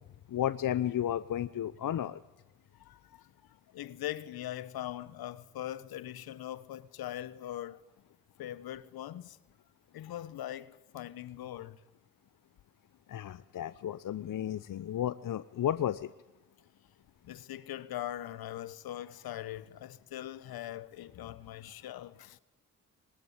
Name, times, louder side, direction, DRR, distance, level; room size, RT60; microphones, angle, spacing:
voice 1, 0.3-2.2 13.1-16.1, left 11 dB, 60° left, 0.8 m, -33 dB
voice 2, 2.8-7.8 8.4-9.4 9.9-11.8 17.2-22.4, left 12 dB, 75° left, 1.2 m, -41 dB
21.5 x 19.0 x 9.6 m
supercardioid pair, 40°, 36 cm